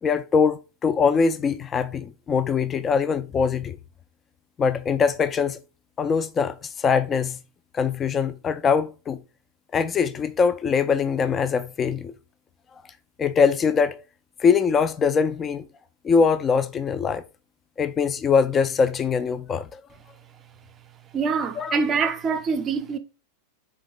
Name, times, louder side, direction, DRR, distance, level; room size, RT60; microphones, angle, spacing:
voice 1, 0.0-3.8 4.6-5.6 6.0-7.4 7.7-9.2 9.7-12.1 13.2-14.0 14.4-15.7 16.0-17.2 17.8-19.8 21.6-21.8, left 5 dB, 25° left, 0.3 m, -22 dB
voice 2, 21.1-23.0, right 5 dB, 25° right, 0.6 m, -25 dB
4.4 x 2.9 x 3.7 m
figure-of-eight pair, 90°, 0 cm